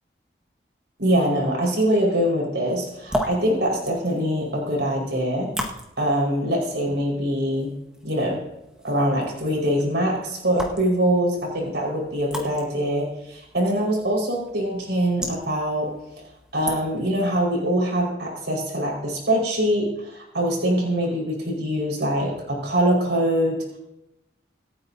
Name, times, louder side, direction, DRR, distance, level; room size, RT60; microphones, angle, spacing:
voice 1, 1.0-5.5 6.0-7.7 8.0-8.4 8.8-15.9 16.2-16.3 16.5-23.6, equal, 75° right, -2 dB, 5.0 m, -23 dB
sound 1, 2.8-17.2, equal, 5° right, 1.6 m, -37 dB
26.0 x 9.7 x 2.8 m, 0.86 s
head